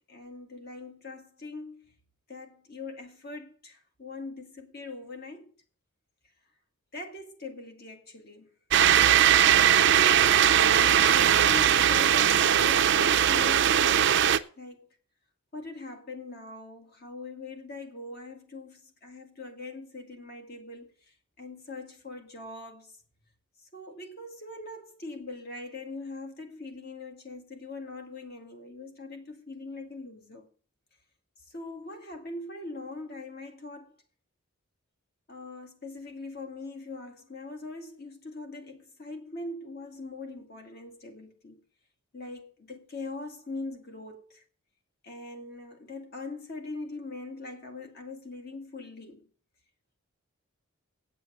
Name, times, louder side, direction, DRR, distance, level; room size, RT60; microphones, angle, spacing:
voice 1, 0.0-1.9 2.3-5.5 6.9-8.5 10.4-14.1 14.6-14.9 15.5-23.0 23.6-30.5 31.5-34.0 35.3-41.6 42.1-44.4 45.0-49.3, left 3 dB, 45° left, 2.0 m, -42 dB
sound 1, 8.7-14.4, right 9 dB, 55° right, 0.5 m, -20 dB
8.9 x 7.6 x 7.1 m
head